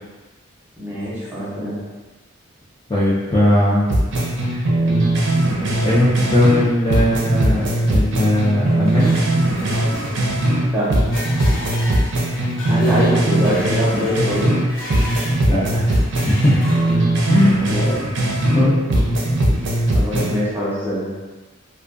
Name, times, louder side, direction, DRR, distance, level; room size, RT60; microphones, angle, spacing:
voice 1, 0.8-1.8 10.7-10.9 12.7-14.6 17.7-18.1 19.9-21.1, equal, 10° right, -9 dB, 0.7 m, -23 dB
voice 2, 2.9-3.8 4.5-4.7 5.8-9.1 12.6-12.8 15.4-15.9 16.2-16.6 17.3-17.7 18.5-18.8, left 1 dB, 20° left, -9 dB, 0.3 m, -18 dB
sound 1, 3.9-6.6 6.9-10.6 10.9-14.6 14.9-18.6 18.9-20.3, right 1 dB, 65° right, 0.5 m, -19 dB
sound 2, 8.7-15.4 15.8-17.3, left 1 dB, 75° left, 0.7 m, -34 dB
2.3 x 2.2 x 2.5 m, 1.2 s
head